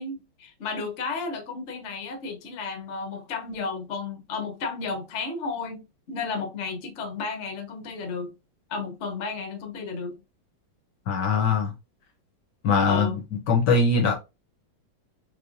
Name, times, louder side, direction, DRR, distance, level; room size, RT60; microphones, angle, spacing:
voice 1, 0.0-8.3 8.7-10.2 12.9-13.2, left 4 dB, 50° left, 0.9 m, -33 dB
voice 2, 11.1-11.7 12.6-13.1 13.5-14.2, left 4 dB, 65° left, 1.2 m, -21 dB
3.9 x 3.4 x 2.5 m
omnidirectional pair, 2.2 m